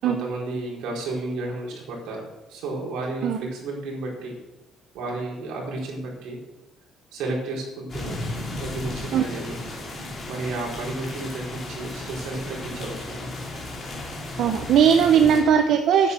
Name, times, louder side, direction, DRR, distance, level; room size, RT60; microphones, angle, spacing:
voice 1, 0.0-2.2 2.5-4.3 4.9-6.4 7.1-9.6 10.3-13.3 15.1-15.4, right 2 dB, 80° right, -3 dB, 4.5 m, -32 dB
sound 1, 7.9-15.4, left 2 dB, 30° left, 3.0 m, -34 dB
voice 2, 14.4-16.1, right 8 dB, 55° right, 5 dB, 0.8 m, -18 dB
9.3 x 8.9 x 7.0 m, 0.98 s
cardioid pair, 180°, 0 cm